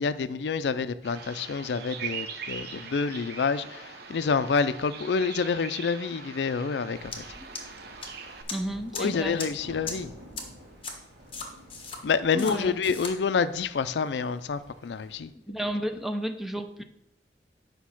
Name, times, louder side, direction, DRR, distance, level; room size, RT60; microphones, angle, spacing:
voice 1, 0.0-7.2 8.9-10.1 12.0-15.3, left 5 dB, 70° left, 14 dB, 0.4 m, -28 dB
Bird vocalization bird call bird song, 1.0-8.4, right 6 dB, 65° right, 0.9 m, -41 dB
sound 1, 6.9-15.2, equal, 85° right, 2.9 m, -51 dB
sound 2, 7.1-7.2 7.5-8.1 8.5-8.6 8.9-9.0 9.4-9.5 9.9-10.0 10.4-10.5 10.8-10.9 11.3-12.0 12.4-12.5 12.8-13.1, left 4 dB, 30° left, 1.3 m, -36 dB
voice 2, 8.5-9.4 12.3-12.8 15.5-16.8, equal, ahead, 6 dB, 0.6 m, -32 dB
8.2 x 5.2 x 5.8 m, 0.79 s
head